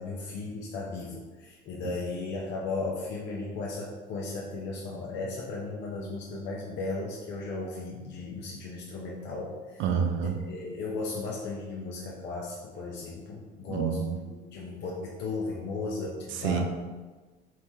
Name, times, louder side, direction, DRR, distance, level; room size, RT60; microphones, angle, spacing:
voice 1, 0.0-9.8 10.5-14.0 14.5-16.6, left 3 dB, 60° left, -3 dB, 0.7 m, -35 dB
voice 2, 9.8-10.4 13.7-14.2 16.4-16.6, right 7 dB, 70° right, 4 dB, 0.6 m, -28 dB
3.4 x 2.9 x 4.5 m, 1.3 s
cardioid pair, 115°, 20 cm